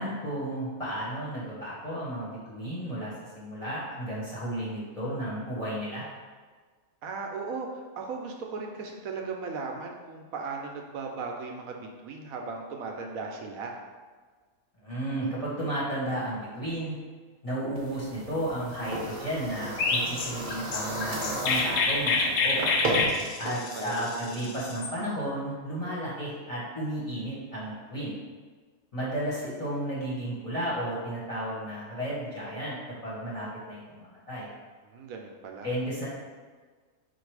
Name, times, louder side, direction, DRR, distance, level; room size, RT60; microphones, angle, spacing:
voice 1, 0.0-6.0 14.8-16.9 17.4-22.6 23.4-28.2 28.9-32.7 33.0-34.5 35.6-36.1, right 1 dB, 25° left, -8 dB, 1.2 m, -33 dB
voice 2, 7.0-13.7 23.1-24.1 34.8-35.7, right 4 dB, 80° right, 1 dB, 1.0 m, -37 dB
sound 1, 17.8-23.0, right 1 dB, 40° right, 0.9 m, -34 dB
Chirp tweet, 19.8-24.9, left 3 dB, 70° left, 0.9 m, -27 dB
4.5 x 2.6 x 4.7 m, 1.5 s
omnidirectional pair, 1.5 m